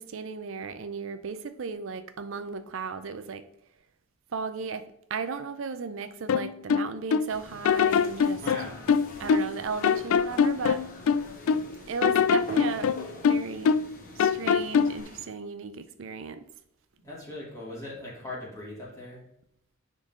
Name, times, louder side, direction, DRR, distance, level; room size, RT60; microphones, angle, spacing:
voice 1, 0.0-3.4 4.3-8.4 9.2-10.8 11.9-12.9 13.3-13.7 14.1-16.4, right 5 dB, 65° right, 10 dB, 0.5 m, -35 dB
sound 1, 6.3-7.3 7.6-9.6 9.8-11.7 12.0-13.9 14.2-15.0, left 6 dB, 75° left, 0.3 m, -23 dB
sound 2, 7.3-15.3, left 2 dB, 40° left, 1.2 m, -45 dB
voice 2, 8.3-8.9 17.0-19.2, left 2 dB, 15° left, -6 dB, 2.8 m, -39 dB
10.0 x 3.9 x 3.6 m, 0.78 s
head